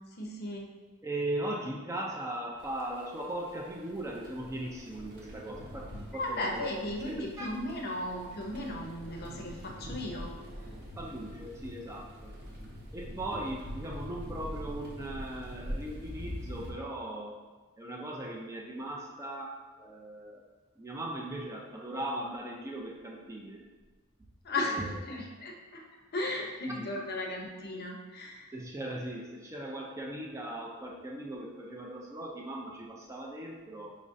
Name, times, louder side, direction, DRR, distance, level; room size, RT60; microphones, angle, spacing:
voice 1, 0.2-0.6 6.1-10.3 24.4-24.8 25.1-25.8 26.1-28.5, left 1 dB, 45° left, 0 dB, 0.6 m, -36 dB
voice 2, 1.0-6.7 7.1-7.5 11.0-12.3 12.9-17.4 17.8-20.4 20.8-23.7 24.7-25.0 26.6-26.9 28.5-34.0, right 1 dB, 15° right, -2 dB, 0.4 m, -38 dB
sound 1, 2.6-16.7, equal, 50° right, 0.8 m, -44 dB
5.0 x 3.1 x 2.6 m, 1.3 s
head